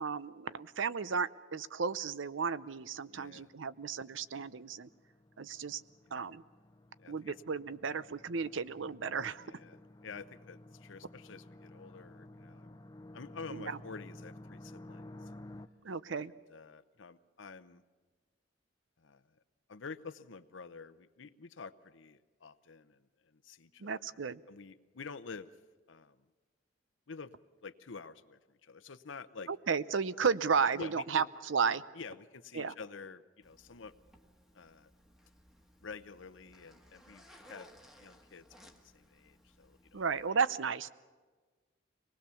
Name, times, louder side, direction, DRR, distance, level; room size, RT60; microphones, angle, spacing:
voice 1, 0.0-4.9 5.4-5.8 6.1-6.4 7.1-9.5 13.5-13.8 15.8-16.3 23.8-24.4 29.5-31.8 32.5-32.7 39.9-40.9, right 5 dB, 80° right, 16 dB, 0.7 m, -33 dB
sound 1, 2.8-15.7, left 1 dB, 20° left, 0.6 m, -53 dB
voice 2, 3.1-3.5 6.0-6.2 7.0-7.3 9.4-12.8 13.1-15.4 16.5-17.8 19.0-19.4 19.7-25.5 25.9-26.2 27.1-27.4 27.6-29.5 30.8-31.3 31.9-33.9 34.5-34.9 35.8-37.7 38.0-40.0, left 5 dB, 85° left, 11 dB, 0.8 m, -49 dB
Zipper (clothing), 33.4-40.3, equal, ahead, 1.4 m, -60 dB
25.0 x 19.5 x 7.0 m, 1.4 s
head